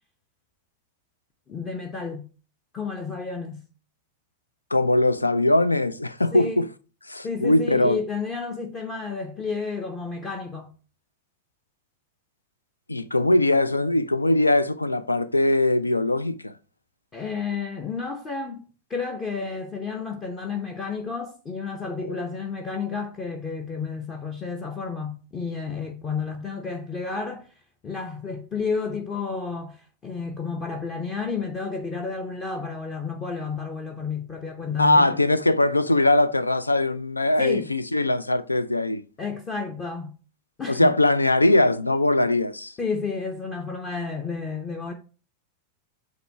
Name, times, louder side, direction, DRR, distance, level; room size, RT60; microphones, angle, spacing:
voice 1, 1.5-2.3 2.7-3.6 6.3-6.7 7.2-10.7 17.1-27.5 27.8-35.4 37.4-37.7 39.2-40.1 40.6-40.9 42.8-44.9, left 5 dB, 25° left, 0.8 m, -31 dB
voice 2, 4.7-6.7 7.1-8.0 12.9-16.5 22.0-22.2 34.8-39.0 40.7-42.7, left 2 dB, 80° left, 0.4 m, -21 dB
7.7 x 2.8 x 4.4 m
figure-of-eight pair, 90°, 0 cm